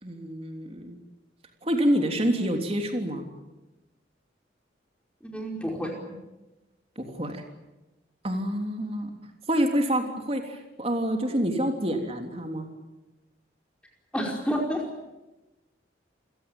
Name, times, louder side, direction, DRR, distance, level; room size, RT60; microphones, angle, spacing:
voice 1, 0.0-1.0 1.6-3.2 6.9-7.4 8.2-9.1 9.5-12.7, equal, 30° right, 4 dB, 3.4 m, -27 dB
voice 2, 5.2-6.2 14.1-14.8, equal, 5° left, 0 dB, 5.0 m, -30 dB
28.5 x 17.0 x 9.2 m, 1.0 s
head